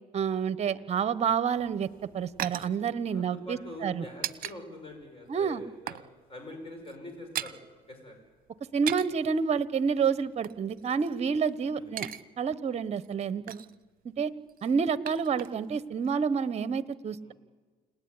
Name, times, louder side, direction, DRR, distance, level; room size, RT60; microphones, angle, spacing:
voice 1, 0.1-1.9 2.1-4.1 5.3-5.6 8.7-12.1 12.4-13.6 14.2-14.3 14.6-17.3, right 6 dB, 40° right, 15 dB, 1.1 m, -29 dB
sound 1, 1.6-4.6 4.9-5.0 5.4-6.1 6.4-6.5 6.8-7.6 8.6-9.3 10.0-11.5 11.8-12.2 12.5-12.6 13.0-13.8 14.5-15.8 16.0-16.1, right 11 dB, 55° right, 0.9 m, -39 dB
voice 2, 3.1-7.6 7.9-8.1 11.7-11.9 17.2-17.3, left 1 dB, 35° left, 4 dB, 6.6 m, -44 dB
29.5 x 19.5 x 9.7 m, 1.5 s
cardioid pair, 110°, 17 cm